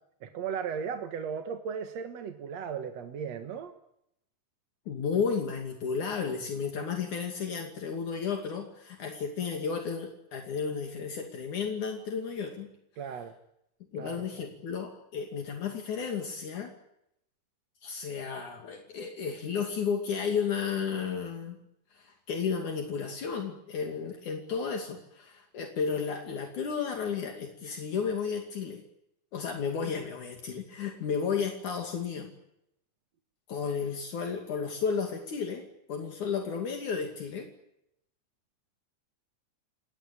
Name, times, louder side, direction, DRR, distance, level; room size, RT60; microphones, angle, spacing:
voice 1, 0.2-3.7 13.0-13.3 13.9-14.5, right 7 dB, 60° right, 6 dB, 2.5 m, -36 dB
voice 2, 4.9-12.7 13.9-16.7 17.8-21.6 21.9-28.8 29.3-32.3 33.5-37.5, left 6 dB, 70° left, 3 dB, 4.0 m, -33 dB
30.0 x 18.5 x 8.8 m, 0.79 s
omnidirectional pair, 3.6 m